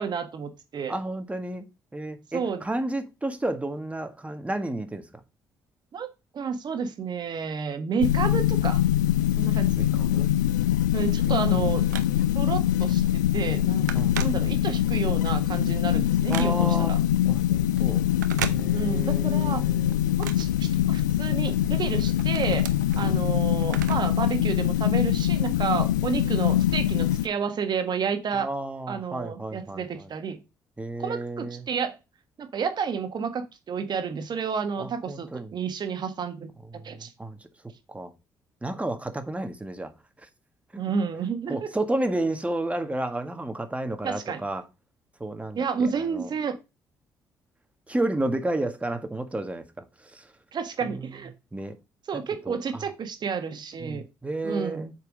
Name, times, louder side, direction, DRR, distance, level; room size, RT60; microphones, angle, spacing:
voice 1, 0.0-1.0 2.3-2.6 5.9-6.1 6.3-8.8 9.4-9.9 10.9-11.9 12.3-13.9 14.2-17.0 18.7-19.6 20.2-22.7 23.0-28.5 28.9-30.4 31.0-31.9 32.4-36.5 36.8-37.1 40.8-41.7 44.0-44.4 45.6-46.6 50.5-51.3 52.1-54.0 54.4-54.9, right 6 dB, 50° right, 1.5 m, -30 dB
voice 2, 0.9-1.7 1.9-5.1 9.8-10.3 11.4-11.6 13.9-14.2 16.3-17.0 17.2-18.0 18.4-20.1 22.9-23.2 28.3-30.1 30.8-31.7 34.8-35.5 36.6-37.4 37.9-38.1 38.6-39.9 40.7-40.8 41.5-44.6 45.2-46.3 47.9-50.3 50.8-51.2 51.5-51.7 52.1-52.9 53.8-54.9, right 2 dB, 15° right, 1.7 m, -32 dB
sound 1, 8.0-27.3, left 12 dB, 85° left, 0.4 m, -23 dB
Telephone, 11.5-12.5 13.0-13.2 13.5-15.0 15.4-16.9 18.1-19.2 19.5-21.3 21.7-24.2 24.5-24.6 25.5-25.6, right 9 dB, 85° right, 0.6 m, -37 dB
8.0 x 4.7 x 5.1 m
hypercardioid pair, 45°, 10 cm